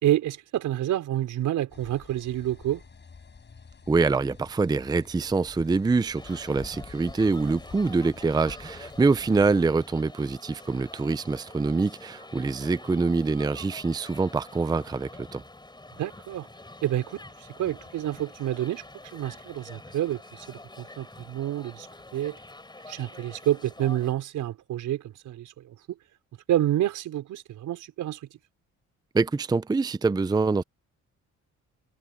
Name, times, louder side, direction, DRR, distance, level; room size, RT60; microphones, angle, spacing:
voice 1, 0.0-2.8 16.0-16.5 16.8-18.8 19.1-20.2 20.5-21.9 22.1-22.4 22.9-26.0 26.5-28.2, right 13 dB, 80° right, 5.2 m, -28 dB
sound 1, 1.7-9.6, left 5 dB, 35° left, 7.4 m, -48 dB
voice 2, 3.9-15.4 29.1-30.6, right 4 dB, 15° right, 0.5 m, -25 dB
sound 2, 6.1-24.1, left 2 dB, 15° left, 5.8 m, -47 dB
cardioid pair, 90°, 30 cm